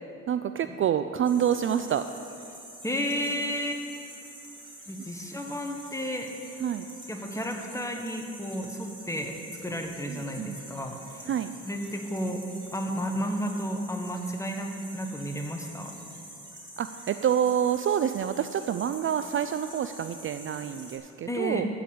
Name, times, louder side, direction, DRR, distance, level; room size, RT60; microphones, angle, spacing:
voice 1, 0.3-2.1 6.6-6.9 10.1-10.6 11.3-11.5 16.8-21.7, right 9 dB, 45° right, 10 dB, 0.4 m, -27 dB
sound 1, 1.2-21.0, right 1 dB, 15° right, 2.7 m, -46 dB
voice 2, 2.8-3.8 4.9-6.3 7.1-11.3 11.6-12.4 12.7-16.0 21.3-21.7, equal, 10° left, 3 dB, 1.3 m, -32 dB
13.0 x 4.9 x 8.6 m, 2.6 s
cardioid pair, 90°, 30 cm